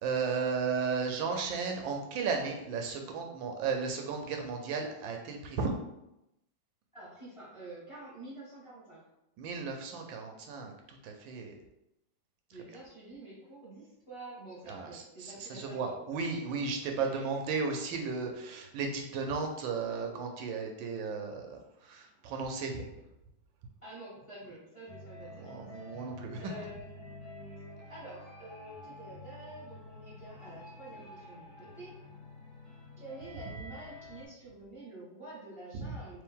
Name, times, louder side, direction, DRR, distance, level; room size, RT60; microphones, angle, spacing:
voice 1, 0.0-5.7 9.4-11.5 14.7-21.6 21.8-22.7 25.4-26.5 35.9-36.0, right 5 dB, 80° right, 3 dB, 1.3 m, -34 dB
voice 2, 6.9-9.0 12.5-16.3 17.0-17.3 22.5-22.9 23.8-26.0 26.4-31.9 33.0-36.2, right 2 dB, 20° left, -7 dB, 1.2 m, -48 dB
sound 1, 24.9-34.3, left 2 dB, 55° left, 1.2 m, -49 dB
3.4 x 3.2 x 3.6 m, 0.87 s
omnidirectional pair, 2.1 m